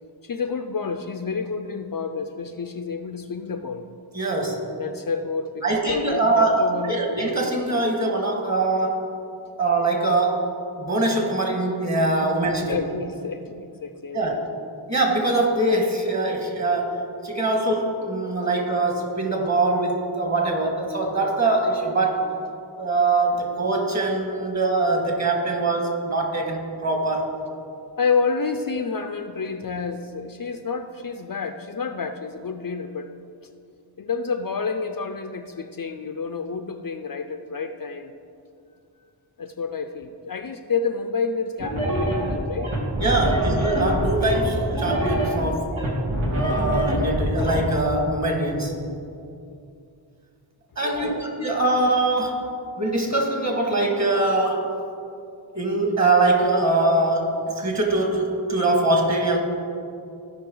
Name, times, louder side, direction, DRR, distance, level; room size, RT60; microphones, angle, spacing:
voice 1, 0.2-3.9 4.8-6.9 12.6-14.2 28.0-33.1 34.0-38.1 39.4-42.7 43.1-43.4 44.2-44.3 50.8-51.3, left 5 dB, 45° left, 7 dB, 0.5 m, -29 dB
voice 2, 4.1-4.6 5.6-9.1 9.6-10.5 10.8-12.8 14.1-14.5 14.9-22.3 22.8-27.3 43.0-45.7 46.3-48.7 50.8-52.5 52.8-54.7 55.5-59.4, right 2 dB, 35° right, 1 dB, 1.7 m, -23 dB
sound 1, 41.6-47.6, right 1 dB, 85° right, 1.8 m, -24 dB
15.0 x 5.4 x 3.9 m, 2.5 s
wide cardioid pair, 65°, 47 cm